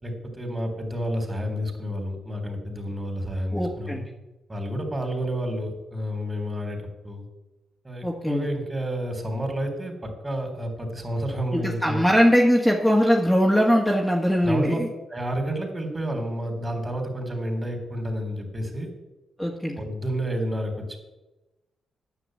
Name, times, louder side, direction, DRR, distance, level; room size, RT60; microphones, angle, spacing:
voice 1, 0.0-4.0 4.5-7.3 7.8-12.0 14.4-14.8 15.1-18.9 19.8-21.0, equal, 25° right, 4 dB, 3.7 m, -30 dB
voice 2, 3.5-4.0 8.0-8.5 11.5-14.9 19.4-19.8, equal, ahead, -2 dB, 1.9 m, -21 dB
10.0 x 6.7 x 7.9 m, 1.0 s
supercardioid pair, 60°, 0 cm